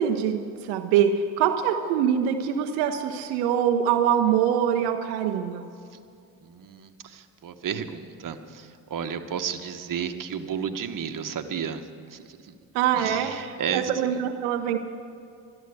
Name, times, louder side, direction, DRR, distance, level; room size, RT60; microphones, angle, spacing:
voice 1, 0.0-5.7 12.7-14.8, right 9 dB, 90° right, 5 dB, 0.8 m, -24 dB
voice 2, 6.4-12.5 12.9-13.9, right 7 dB, 50° right, 7 dB, 1.2 m, -33 dB
12.5 x 11.0 x 8.0 m, 2.4 s
supercardioid pair, 55°, 42 cm